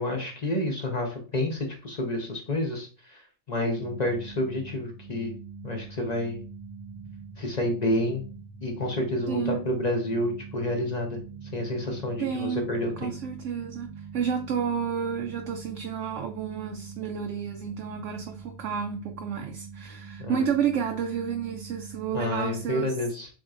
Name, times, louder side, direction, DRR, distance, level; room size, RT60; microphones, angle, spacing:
voice 1, 0.0-3.2 3.5-5.3 5.6-6.4 7.4-8.2 8.6-11.2 11.5-13.1 20.2-20.4 22.1-23.3, left 1 dB, 35° left, 1.0 m, -29 dB
sound 1, 3.7-22.7, right 5 dB, 40° right, 0.5 m, -43 dB
voice 2, 9.3-9.6 12.2-12.6 13.0-22.9, right 7 dB, 65° right, 0.9 m, -31 dB
7.2 x 3.0 x 2.5 m
omnidirectional pair, 1.4 m